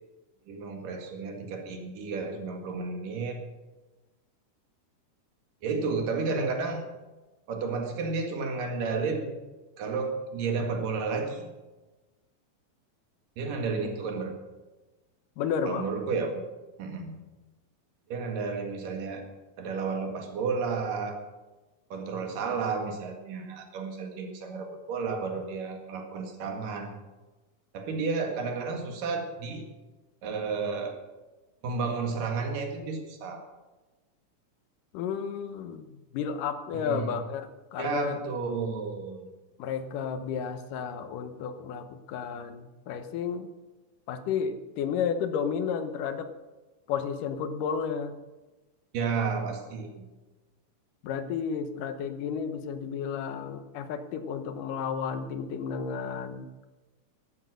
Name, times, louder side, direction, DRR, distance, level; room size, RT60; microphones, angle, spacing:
voice 1, 0.5-3.4 5.6-6.8 7.5-9.4 9.8-11.5 13.4-14.4 15.7-16.4 16.8-17.2 18.1-19.2 19.6-21.2 21.9-27.0 27.7-29.6 30.2-31.0 31.6-33.5 36.7-37.1 37.8-39.3 48.9-50.1, right 4 dB, 85° right, 3 dB, 3.6 m, -32 dB
voice 2, 15.4-15.9 34.9-35.8 36.1-38.2 39.6-43.5 44.1-46.3 46.9-48.1 51.0-56.5, left 7 dB, 80° left, 10 dB, 2.6 m, -32 dB
14.5 x 12.0 x 6.3 m, 1.2 s
omnidirectional pair, 3.7 m